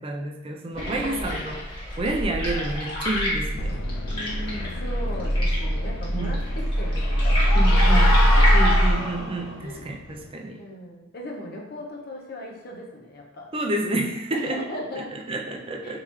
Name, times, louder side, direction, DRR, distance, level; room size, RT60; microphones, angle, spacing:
voice 1, 0.0-3.8 6.1-6.3 7.5-8.1 8.5-10.6 13.5-14.6 15.0-16.0, right 2 dB, 25° right, 2 dB, 0.5 m, -29 dB
sound 1, 0.7-8.9, equal, 25° left, 1.4 m, -22 dB
voice 2, 0.9-1.4 4.1-8.4 9.6-9.8 10.6-13.5 14.3-15.1 15.8-16.0, left 1 dB, 50° left, -1 dB, 0.8 m, -38 dB
sound 2, 3.5-10.3, left 1 dB, 65° left, 0.4 m, -40 dB
sound 3, 6.6-9.6, left 1 dB, 90° left, 0.8 m, -28 dB
4.1 x 3.8 x 3.0 m, 0.93 s
head